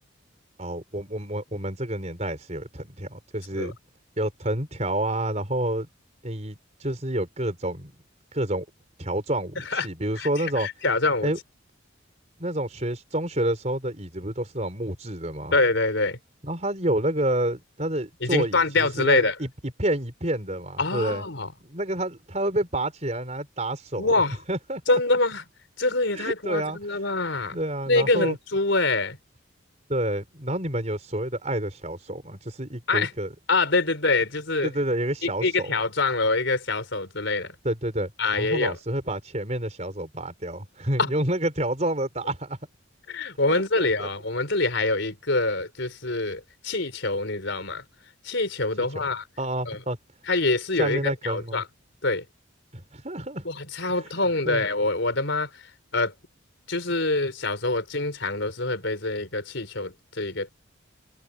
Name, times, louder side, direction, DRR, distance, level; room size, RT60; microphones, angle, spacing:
voice 1, 0.6-3.8 4.2-5.9 6.2-7.9 8.3-8.6 9.0-10.7 11.2-11.4 12.4-15.5 16.4-19.5 19.8-21.2 21.6-24.1 24.5-25.0 26.1-26.8 27.5-28.4 29.9-33.3 34.6-35.7 37.6-42.6 43.5-44.1 48.8-49.1 49.4-50.0 50.8-51.6 52.7-53.5 53.9-54.6, right 1 dB, 35° right, 4.4 m, -29 dB
voice 2, 9.6-9.9 10.2-11.3 15.5-16.2 18.2-19.3 20.8-21.5 24.0-24.4 24.9-25.4 25.8-27.6 27.9-29.2 32.9-33.1 33.5-34.7 35.2-37.5 38.2-38.8 41.0-41.1 43.1-47.8 48.2-49.2 49.7-49.8 50.3-51.6 52.0-52.2 53.4-55.5 55.9-56.1 56.7-60.5, left 3 dB, 65° left, 4.2 m, -25 dB
head